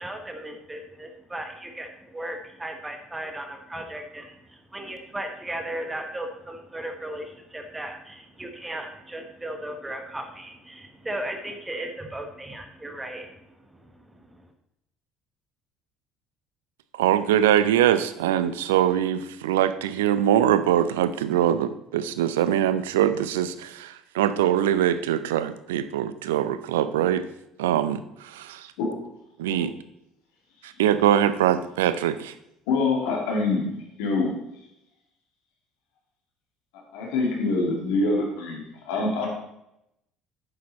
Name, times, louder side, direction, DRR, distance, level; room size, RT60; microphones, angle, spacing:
voice 1, 0.0-14.5, right 1 dB, 15° right, 5 dB, 1.2 m, -36 dB
voice 2, 16.9-27.3 27.6-28.7 29.4-29.7 30.8-32.3, right 11 dB, 80° right, 13 dB, 0.4 m, -23 dB
voice 3, 28.8-29.1 29.5-29.6 32.7-33.6 34.0-34.3 36.9-39.3, left 3 dB, 70° left, -1 dB, 2.3 m, -25 dB
8.3 x 6.9 x 4.2 m, 0.82 s
hypercardioid pair, 60°, 0 cm